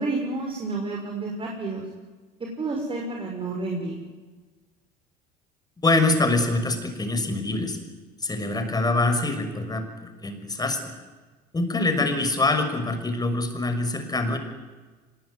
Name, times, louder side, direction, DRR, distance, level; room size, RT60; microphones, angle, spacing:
voice 1, 0.0-1.8 2.6-3.9, right 3 dB, 25° right, 0 dB, 6.3 m, -30 dB
voice 2, 5.8-7.8 8.2-10.8 11.5-14.4, left 2 dB, 20° left, 7 dB, 6.0 m, -24 dB
25.0 x 21.0 x 9.6 m, 1.3 s
hypercardioid pair, 80°, 20 cm